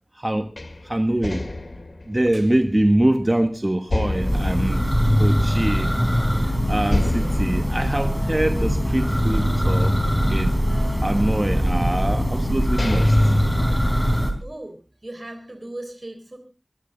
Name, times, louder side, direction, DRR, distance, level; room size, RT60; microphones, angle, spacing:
voice 1, 0.1-0.5 0.8-1.5 2.1-4.8 5.2-5.9 6.7-10.0 10.3-10.6 11.0-13.3, right 1 dB, 30° right, 1.2 m, -23 dB
sound 1, 0.6-3.4 3.9-5.8 6.2-6.3 6.9-9.3 9.8-11.4 12.1-12.2 12.6-14.4, left 2 dB, 75° left, 2.1 m, -31 dB
Church bell, 4.0-14.3, equal, 5° left, 3.8 m, -21 dB
voice 2, 14.4-16.4, right 1 dB, 50° right, 3.9 m, -37 dB
21.5 x 13.0 x 3.9 m
wide cardioid pair, 45°, 0 cm